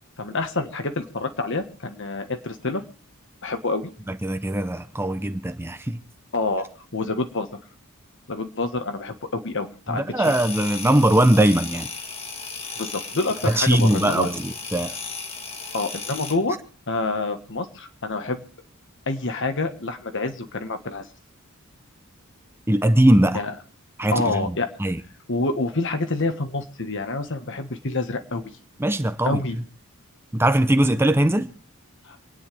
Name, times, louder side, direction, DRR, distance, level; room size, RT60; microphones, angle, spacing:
voice 1, 0.2-2.8 3.4-3.9 6.3-7.5 8.3-10.2 12.8-14.3 15.7-16.6 16.9-18.4 19.1-21.1 23.3-23.5 24.1-24.7 25.3-28.4 29.2-29.6 32.1-32.2, left 3 dB, 60° left, 1.5 m, -27 dB
voice 2, 4.1-6.0 9.9-11.9 13.4-14.9 22.7-23.4 24.0-24.2 24.8-25.0 28.8-29.4 30.3-31.5, right 1 dB, 10° right, 0.6 m, -20 dB
sound 1, 10.2-16.4, left 4 dB, 25° left, 1.7 m, -35 dB
27.5 x 9.8 x 3.4 m
head